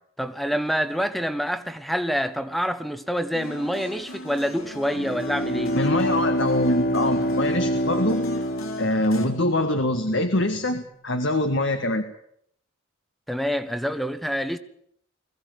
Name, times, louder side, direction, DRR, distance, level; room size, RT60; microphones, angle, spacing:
voice 1, 0.2-5.8 13.3-14.6, equal, ahead, 1.1 m, -27 dB
sound 1, 3.3-9.3, left 2 dB, 85° left, 3.9 m, -38 dB
Bowed string instrument, 4.9-9.5, equal, 45° left, 1.5 m, -26 dB
voice 2, 5.7-8.2 8.8-12.1, left 1 dB, 65° left, 1.8 m, -24 dB
21.5 x 16.0 x 9.3 m
head